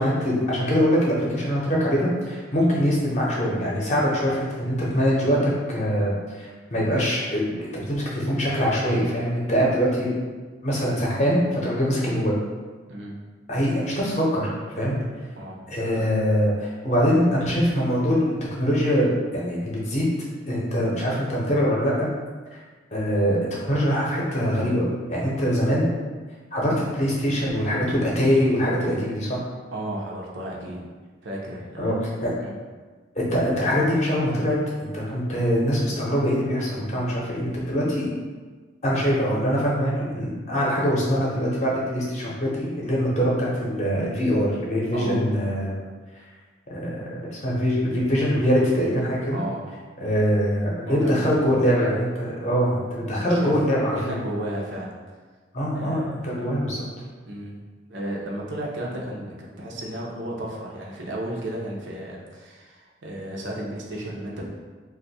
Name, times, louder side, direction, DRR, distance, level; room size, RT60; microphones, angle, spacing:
voice 1, 0.0-10.1 10.6-12.4 13.5-14.5 14.7-14.9 15.7-20.1 20.5-22.1 22.9-25.9 26.5-29.4 31.8-31.9 32.2-32.4 33.2-38.1 38.8-45.7 46.7-49.4 50.0-54.2 55.5-56.8, equal, 40° left, -4 dB, 0.7 m, -23 dB
voice 2, 29.7-30.8 31.2-31.9 32.4-32.6 44.9-45.2 49.3-49.6 50.8-51.6 53.1-53.6 53.9-54.9 55.7-56.4 57.2-57.6 57.9-64.5, right 1 dB, 80° right, -3 dB, 0.7 m, -33 dB
2.6 x 2.4 x 4.0 m, 1.4 s
head